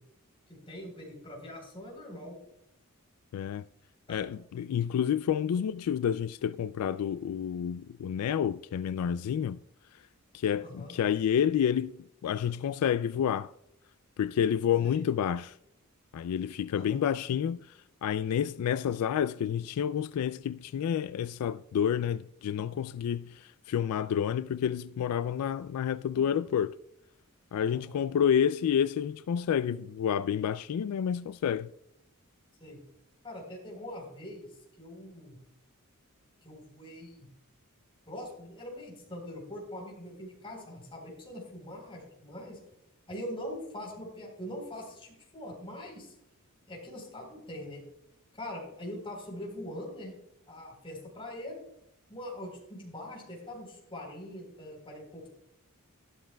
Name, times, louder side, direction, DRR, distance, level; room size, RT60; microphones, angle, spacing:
voice 1, 0.5-2.4 4.1-4.3 10.6-10.9 14.8-15.0 16.7-17.0 26.1-26.3 27.7-28.1 32.6-32.8 33.2-34.5 34.8-35.4 36.4-37.3 38.1-42.6 43.1-46.1 46.7-47.8 48.3-50.2 50.5-51.6 52.1-55.3, left 1 dB, 25° left, 3.8 m, -42 dB
voice 2, 3.3-3.7 4.1-9.6 10.3-13.5 14.2-15.6 16.1-26.7 27.5-31.7, left 8 dB, 85° left, 0.3 m, -29 dB
13.0 x 12.0 x 2.3 m
head